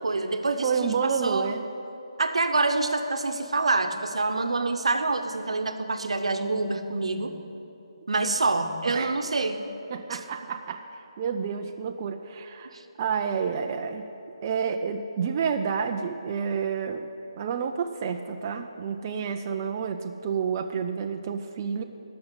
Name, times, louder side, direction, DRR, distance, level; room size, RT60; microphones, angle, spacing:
voice 1, 0.0-1.5 2.2-7.3 8.1-9.6 10.1-10.2 12.7-12.8, right 3 dB, 80° right, 7 dB, 0.9 m, -26 dB
voice 2, 0.6-1.7 8.9-9.2 9.9-10.8 11.2-14.1 14.4-17.1 17.4-21.8, right 6 dB, 30° right, 5 dB, 0.4 m, -29 dB
12.5 x 6.1 x 8.1 m, 2.9 s
hypercardioid pair, 165°, 3 cm